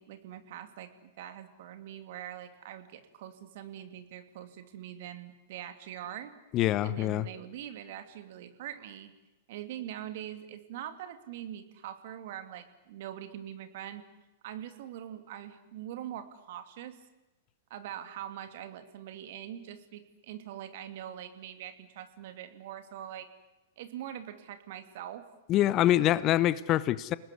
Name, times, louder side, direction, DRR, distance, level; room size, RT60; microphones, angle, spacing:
voice 1, 0.0-6.3 6.8-9.1 9.5-14.0 14.4-17.0 17.7-23.3 23.8-25.3, right 11 dB, 60° right, 9 dB, 2.8 m, -43 dB
voice 2, 6.5-7.3 25.5-27.2, left 13 dB, 35° left, 18 dB, 0.9 m, -25 dB
29.0 x 19.5 x 9.8 m, 1.0 s
hypercardioid pair, 105°, 0 cm